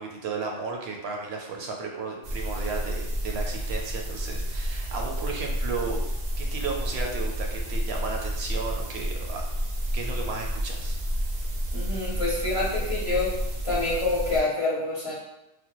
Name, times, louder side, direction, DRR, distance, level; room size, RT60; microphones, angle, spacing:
voice 1, 0.0-6.0 6.4-9.4 9.9-11.0, right 4 dB, 75° right, 1 dB, 0.8 m, -34 dB
sound 1, 2.2-14.4, equal, 55° right, 0.5 m, -30 dB
voice 2, 11.7-13.3 13.6-15.1, left 2 dB, 35° left, -6 dB, 0.6 m, -27 dB
3.3 x 2.1 x 2.9 m, 0.90 s
omnidirectional pair, 1.1 m